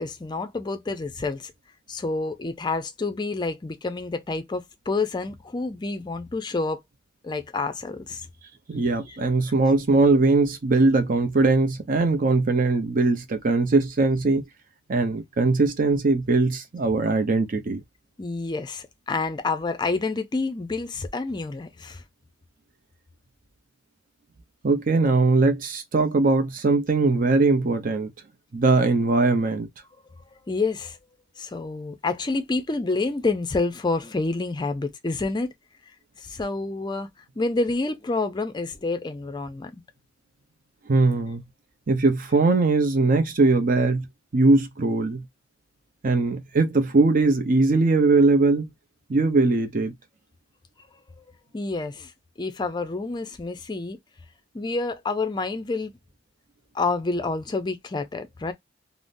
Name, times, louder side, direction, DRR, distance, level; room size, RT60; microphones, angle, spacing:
voice 1, 0.0-1.5 1.9-6.8 7.2-8.3 18.2-22.0 30.5-31.0 31.4-35.5 36.2-37.1 37.4-39.7 51.2-51.3 51.5-52.1 52.4-54.0 54.5-55.9 56.7-58.5, left 3 dB, 25° left, 0.4 m, -28 dB
voice 2, 8.7-14.4 14.9-17.8 24.6-28.1 28.5-29.7 40.9-41.4 41.9-44.1 44.3-45.2 46.0-48.7 49.1-49.9, right 3 dB, 45° right, 0.6 m, -20 dB
3.6 x 2.0 x 2.5 m
head